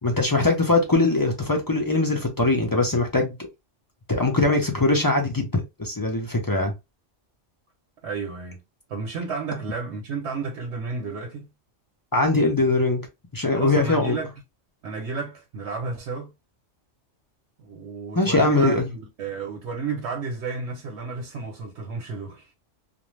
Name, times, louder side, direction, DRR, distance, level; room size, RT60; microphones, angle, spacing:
voice 1, 0.0-3.4 4.1-6.7 12.1-13.0 13.3-14.2 18.2-18.8, left 2 dB, 30° left, 0.4 m, -21 dB
voice 2, 8.0-8.6 8.9-11.5 13.5-14.3 14.8-16.3 17.6-22.5, right 4 dB, 70° right, 0.9 m, -32 dB
2.5 x 2.1 x 3.1 m
omnidirectional pair, 1.2 m